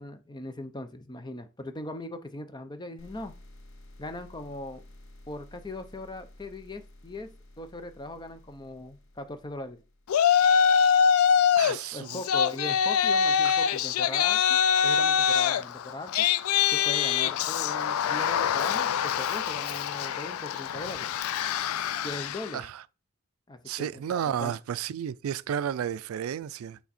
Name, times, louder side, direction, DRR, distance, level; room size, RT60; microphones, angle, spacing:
voice 1, 0.0-3.3 4.0-4.8 5.3-7.3 7.6-9.8 11.6-16.3 16.7-21.1 22.0-22.7 23.5-24.5, left 1 dB, 20° left, 0.6 m, -40 dB
sound 1, 3.0-10.5, left 1 dB, 65° left, 1.0 m, -52 dB
Yell, 10.1-11.8 12.1-22.5, left 7 dB, 85° left, 0.4 m, -24 dB
voice 2, 11.6-12.2 13.4-13.6 22.5-22.8 23.7-26.8, right 9 dB, 85° right, 0.3 m, -32 dB
8.5 x 3.5 x 4.2 m
head